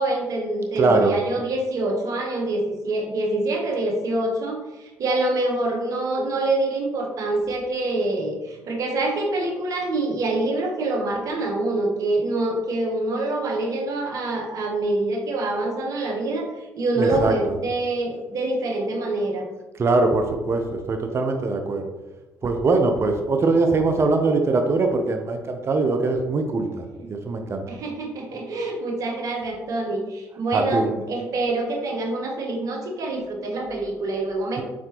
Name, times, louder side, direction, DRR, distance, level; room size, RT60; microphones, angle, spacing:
voice 1, 0.0-19.5 27.0-27.1 27.7-34.6, right 2 dB, 60° right, 2 dB, 1.0 m, -25 dB
voice 2, 0.8-1.2 17.0-17.3 19.8-21.9 22.4-27.6 30.5-30.9, right 3 dB, 40° right, 5 dB, 0.6 m, -22 dB
4.3 x 4.2 x 2.9 m, 1.1 s
supercardioid pair, 70°, 7 cm